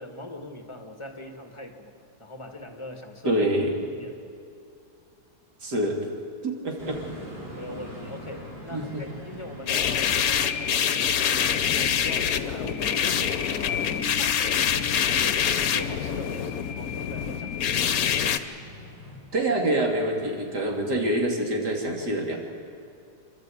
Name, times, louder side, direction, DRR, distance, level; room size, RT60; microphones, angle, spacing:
voice 1, 0.0-3.5 3.9-4.3 7.5-18.0, left 1 dB, 20° left, 4 dB, 1.6 m, -41 dB
voice 2, 3.2-3.7 5.6-6.0 6.4-7.0 8.7-9.0 19.3-22.4, right 1 dB, 75° right, 0 dB, 3.2 m, -26 dB
sound 1, 6.8-19.2, equal, 35° right, 4.8 m, -44 dB
sound 2, 9.7-18.4, left 8 dB, 65° left, 1.2 m, -25 dB
28.0 x 12.0 x 8.6 m, 2.4 s
omnidirectional pair, 1.8 m